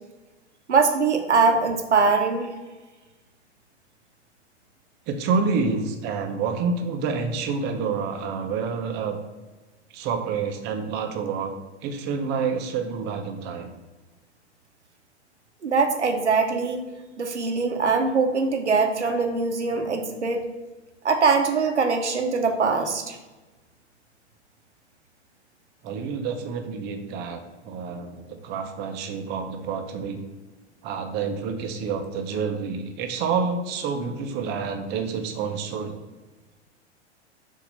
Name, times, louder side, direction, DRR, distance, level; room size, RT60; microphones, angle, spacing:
voice 1, 0.7-2.5 15.6-16.8 17.2-20.4 21.0-23.2, right 4 dB, 80° right, 5 dB, 1.0 m, -22 dB
voice 2, 5.1-9.2 9.9-11.5 11.8-13.8 25.8-30.2 30.8-36.0, right 5 dB, 30° right, 5 dB, 0.8 m, -28 dB
6.7 x 2.8 x 5.5 m, 1.2 s
figure-of-eight pair, 100°, 34 cm